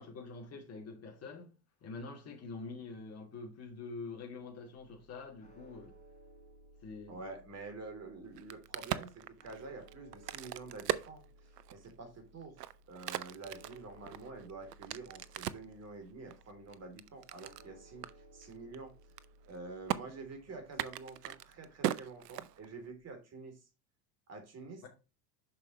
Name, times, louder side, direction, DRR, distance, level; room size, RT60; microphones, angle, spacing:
voice 1, 0.0-1.6 1.8-6.0 6.8-7.2 24.8-24.9, left 4 dB, 30° left, 2.8 m, -46 dB
sound 1, 4.8-23.1, right 1 dB, 15° left, 3.6 m, -61 dB
voice 2, 7.1-12.6 12.9-18.9 19.4-23.7 24.3-24.9, right 3 dB, 30° right, 3.4 m, -48 dB
Crack, 8.3-11.9 12.4-15.7 16.3-17.7 18.0-18.1 18.4-18.8 19.0-19.6 19.9-20.0 20.7-22.9, right 13 dB, 75° right, 0.7 m, -39 dB
7.5 x 6.0 x 3.1 m
hypercardioid pair, 80°, 47 cm